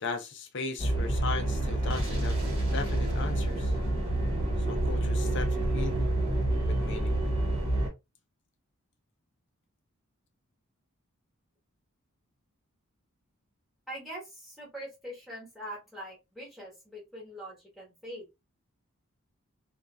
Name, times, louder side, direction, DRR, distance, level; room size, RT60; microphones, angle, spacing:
voice 1, 0.0-2.4 2.7-3.7 4.7-6.1 6.6-7.2, left 4 dB, 55° left, 0.5 m, -37 dB
sound 1, 0.8-7.9, right 1 dB, 25° right, 1.0 m, -28 dB
voice 2, 13.9-18.2, equal, ahead, 1.3 m, -43 dB
2.6 x 2.2 x 2.2 m
head